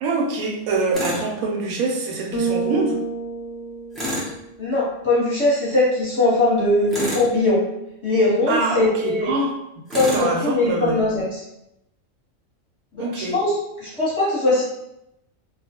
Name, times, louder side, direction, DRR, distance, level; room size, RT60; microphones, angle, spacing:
voice 1, 0.0-3.0 8.5-9.5 9.9-11.0 13.0-13.3, right 3 dB, 90° right, 1 dB, 1.0 m, -24 dB
Tools, 0.9-1.3 3.9-4.4 6.9-7.3 9.9-10.3, left 1 dB, ahead, 0.3 m, -27 dB
Bass guitar, 2.3-4.7, right 4 dB, 70° left, 0.9 m, -28 dB
voice 2, 4.6-7.6 8.0-9.3 9.9-11.4 12.9-13.5 13.8-14.6, left 2 dB, 25° left, -10 dB, 0.9 m, -20 dB
2.3 x 2.3 x 2.8 m, 0.83 s
omnidirectional pair, 1.4 m